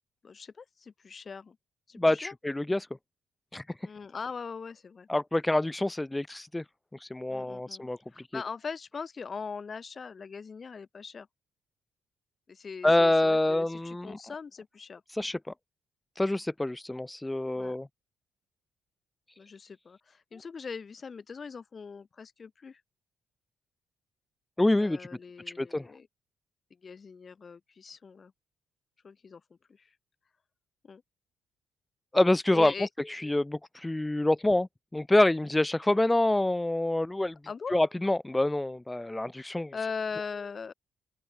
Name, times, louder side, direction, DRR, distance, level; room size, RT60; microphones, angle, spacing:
voice 1, 0.2-1.6 1.9-2.3 3.8-5.1 7.3-11.3 12.5-15.0 17.5-17.8 19.4-22.8 24.7-26.1 26.7-28.3 29.0-29.9 30.8-31.0 32.5-32.9 37.5-37.8 39.3-40.7, left 5 dB, 40° left, 1.1 m, -41 dB
voice 2, 2.0-2.9 3.5-3.6 5.1-6.6 6.9-8.0 12.8-14.2 15.1-15.5 16.2-17.9 24.6-25.1 25.6-25.9 32.1-37.4 37.7-39.7, left 1 dB, 10° left, 0.5 m, -26 dB
open air
cardioid pair, 90°, 0 cm